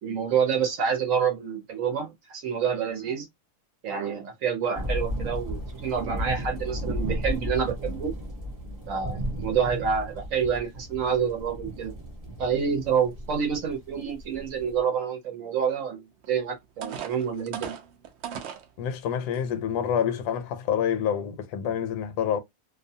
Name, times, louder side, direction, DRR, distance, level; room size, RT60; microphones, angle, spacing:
voice 1, 0.0-3.3 3.8-8.1 8.9-11.9 12.4-16.0 16.3-17.8, right 7 dB, 65° right, 0.9 m, -28 dB
sound 1, 4.7-14.8, equal, 20° right, 0.5 m, -34 dB
sound 2, 16.2-16.3 16.8-18.7 19.3-19.4 19.9-20.2, right 8 dB, 85° right, 0.5 m, -37 dB
voice 2, 18.8-22.4, left 8 dB, 75° left, 1.1 m, -27 dB
2.6 x 2.2 x 2.6 m
omnidirectional pair, 1.7 m